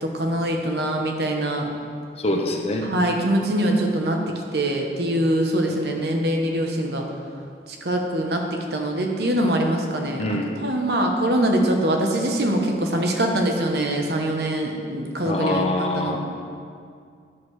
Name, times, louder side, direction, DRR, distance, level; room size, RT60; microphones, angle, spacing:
voice 1, 0.0-1.7 2.8-7.1 7.8-16.2, right 1 dB, 65° right, 2 dB, 1.1 m, -23 dB
voice 2, 2.2-2.9 10.2-10.5 15.2-16.2, left 1 dB, 35° left, 2 dB, 0.9 m, -24 dB
10.5 x 6.7 x 4.8 m, 2.3 s
head